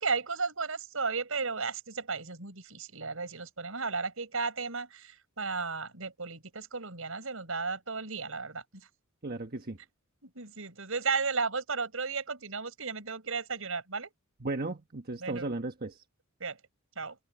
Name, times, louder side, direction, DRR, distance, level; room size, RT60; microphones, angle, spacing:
voice 1, 0.0-8.9 10.2-14.1 15.2-15.5 16.4-16.6 17.0-17.2, right 4 dB, 85° right, 4.6 m, -34 dB
voice 2, 9.2-9.8 14.4-16.0, right 2 dB, 50° right, 1.3 m, -35 dB
head